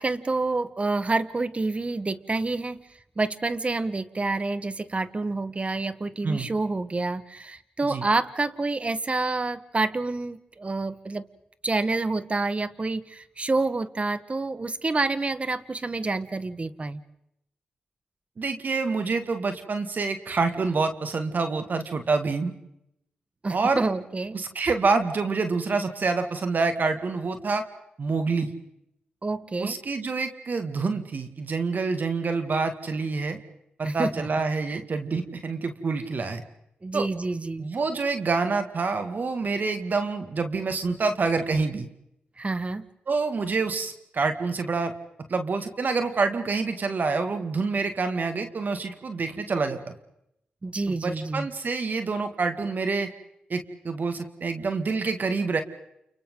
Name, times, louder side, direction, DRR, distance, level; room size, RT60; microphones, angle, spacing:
voice 1, 0.0-2.8 3.2-11.3 11.6-17.0 23.4-24.4 29.2-29.8 33.8-34.3 34.7-34.8 36.8-37.7 42.4-42.8 50.6-51.5, right 3 dB, 35° right, 14 dB, 1.5 m, -28 dB
voice 2, 18.4-22.5 23.5-23.9 24.3-27.6 28.0-28.5 29.6-33.4 33.8-36.4 36.9-37.1 37.6-41.9 43.1-44.9 45.3-49.9 50.9-53.1 53.5-55.6, right 4 dB, 55° right, 7 dB, 2.1 m, -27 dB
29.5 x 29.5 x 3.9 m, 0.80 s
supercardioid pair, 45°, 4 cm